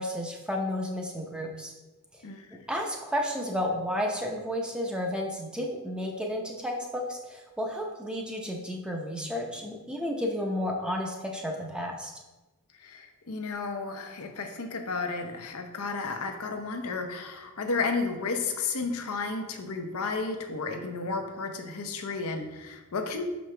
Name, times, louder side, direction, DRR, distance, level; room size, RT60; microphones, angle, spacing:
voice 1, 0.0-1.7 2.7-12.1, left 1 dB, 5° right, 0 dB, 0.7 m, -32 dB
voice 2, 2.2-2.6 12.8-23.3, left 4 dB, 80° left, 4 dB, 0.7 m, -33 dB
6.0 x 5.1 x 3.3 m, 1.1 s
head